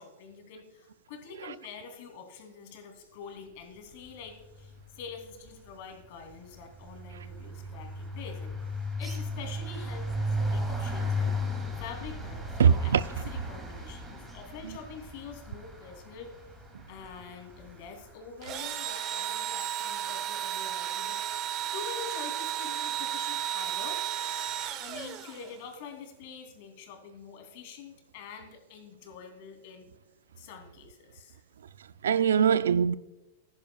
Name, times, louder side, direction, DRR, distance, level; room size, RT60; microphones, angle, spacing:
voice 1, 0.0-8.5 9.0-11.5 11.8-16.3 16.9-21.2 21.7-29.9 30.4-31.4, left 6 dB, 55° left, 2.9 m, -46 dB
sound 1, 4.4-4.7 5.0-18.1, left 1 dB, 15° right, 2.6 m, -36 dB
voice 2, 12.6-13.0 14.6-14.8 32.0-33.0, right 7 dB, 85° right, 0.4 m, -22 dB
Engine / Drill, 18.4-25.7, right 11 dB, 40° right, 0.9 m, -33 dB
15.0 x 10.5 x 2.3 m
hypercardioid pair, 125°, 0 cm